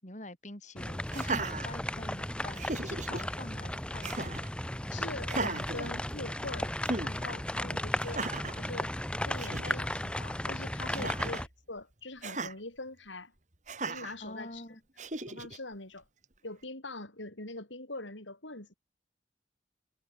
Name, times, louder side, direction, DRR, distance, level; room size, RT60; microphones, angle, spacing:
voice 1, 0.0-4.5 7.6-7.9 11.0-11.2 14.2-14.8, left 1 dB, 40° left, 4.6 m, -45 dB
sound 1, 0.8-11.5, left 1 dB, 5° left, 1.0 m, -35 dB
Laughter, 1.1-2.2 2.6-3.2 4.0-4.5 5.2-6.5 6.9-7.1 8.0-8.6 9.1-9.2 9.4-9.8 10.9-11.5 12.2-12.5 13.7-14.2 15.0-15.6, right 3 dB, 40° right, 3.0 m, -36 dB
voice 2, 4.9-6.7 7.0-8.2 8.5-8.9 9.2-13.3 13.9-14.6 15.3-16.0 16.4-18.8, left 2 dB, 90° left, 7.6 m, -43 dB
head